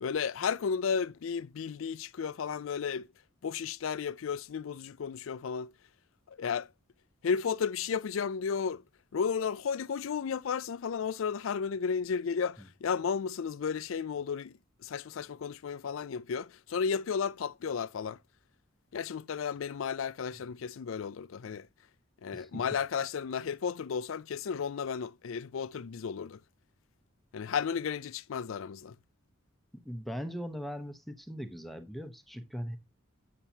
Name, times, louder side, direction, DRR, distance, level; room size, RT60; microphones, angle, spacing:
voice 1, 0.0-3.1 3.4-5.7 6.3-6.7 7.2-8.8 9.1-18.2 18.9-21.7 22.2-26.4 27.3-28.9, left 6 dB, 75° left, 0.4 m, -33 dB
voice 2, 22.3-22.6 29.7-32.8, equal, ahead, 0.9 m, -40 dB
8.3 x 7.4 x 2.8 m
head